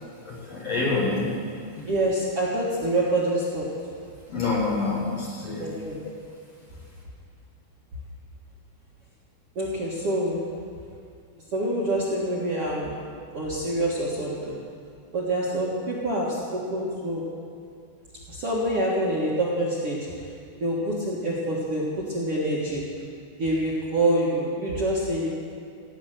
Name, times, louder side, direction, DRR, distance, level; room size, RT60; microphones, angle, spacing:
voice 1, 0.2-1.3 1.8-1.9 4.3-5.7, left 3 dB, 50° left, -4 dB, 2.4 m, -27 dB
voice 2, 1.9-3.7 5.6-6.0 9.6-10.4 11.5-13.0 13.3-14.6 15.1-17.2 18.3-20.3 20.6-22.8 23.4-25.3, right 1 dB, 50° right, -6 dB, 1.9 m, -26 dB
17.0 x 8.7 x 6.4 m, 2.3 s
omnidirectional pair, 4.6 m